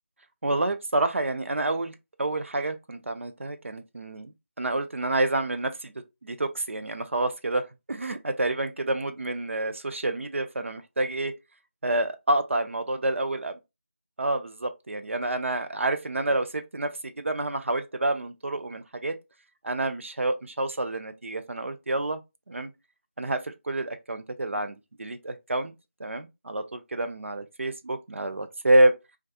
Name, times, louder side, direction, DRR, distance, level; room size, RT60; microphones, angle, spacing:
voice 1, 0.4-5.9 6.2-7.6 7.9-11.3 11.8-13.5 14.2-19.1 19.6-22.2 22.5-22.7 23.2-25.7 26.0-28.9, right 2 dB, 65° right, 0.5 m, -28 dB
2.3 x 2.2 x 2.6 m
figure-of-eight pair, 170°, 7 cm